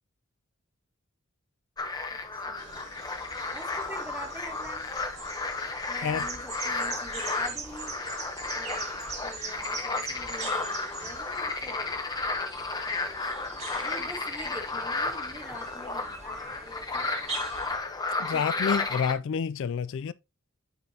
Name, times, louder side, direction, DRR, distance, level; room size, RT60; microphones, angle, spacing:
sound 1, 1.8-19.1, left 3 dB, 20° left, 0.8 m, -33 dB
voice 1, 2.1-2.8 3.5-4.9 5.9-7.9 8.5-12.0 12.8-13.2 13.7-17.1 18.3-18.8, equal, 10° right, 1.4 m, -45 dB
sound 2, 2.6-17.8, right 4 dB, 30° right, 1.5 m, -42 dB
voice 2, 18.2-20.1, left 7 dB, 60° left, 0.3 m, -29 dB
9.5 x 4.3 x 2.8 m
head